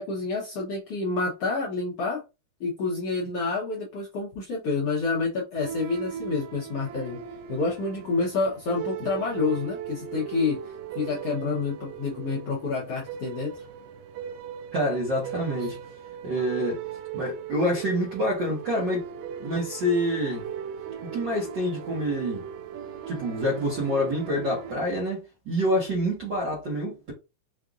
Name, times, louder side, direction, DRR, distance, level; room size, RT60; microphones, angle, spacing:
voice 1, 0.0-2.2 2.6-7.2 7.5-10.6 10.9-13.5 15.6-15.7, left 4 dB, 70° left, 1.5 m, -28 dB
sound 1, 5.5-24.7, right 9 dB, 85° right, 1.6 m, -38 dB
voice 2, 14.7-15.8 16.2-16.8 17.1-19.1 19.4-20.5 21.0-22.5 23.1-27.1, equal, 55° right, 1.2 m, -27 dB
5.6 x 2.5 x 2.4 m
omnidirectional pair, 3.8 m